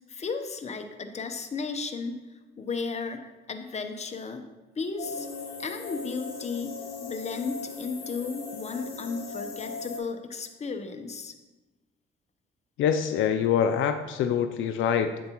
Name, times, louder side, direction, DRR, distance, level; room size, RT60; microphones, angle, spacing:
voice 1, 0.1-2.2 2.6-4.4 4.8-5.3 5.6-6.7 7.0-11.3, left 4 dB, 35° left, 6 dB, 0.8 m, -34 dB
sound 1, 5.0-10.0, left 4 dB, 55° left, 2.2 m, -38 dB
voice 2, 12.8-15.2, left 8 dB, 80° left, 8 dB, 0.4 m, -25 dB
8.0 x 7.4 x 2.9 m, 1.1 s
cardioid pair, 90°, 20 cm